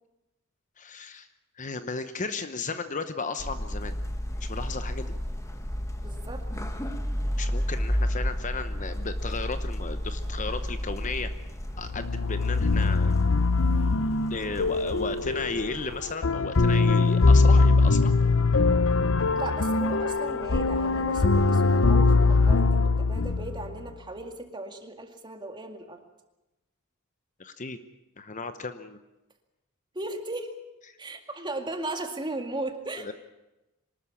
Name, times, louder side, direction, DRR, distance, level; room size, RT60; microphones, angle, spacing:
voice 1, 0.8-1.3 1.6-3.9 4.4-5.1 7.4-11.3 11.8-13.1 14.3-18.1 27.4-27.8 28.2-29.0 33.0-33.1, left 4 dB, 35° left, 10 dB, 0.9 m, -34 dB
sound 1, 3.4-16.1, equal, 15° left, 1.3 m, -33 dB
voice 2, 6.0-6.5 13.4-13.6 14.5-15.2 19.3-26.0 29.9-30.5 31.0-33.1, right 2 dB, 20° right, 5 dB, 2.1 m, -37 dB
sound 2, 11.8-23.9, left 3 dB, 65° left, 0.8 m, -22 dB
24.0 x 13.0 x 9.8 m, 0.99 s
head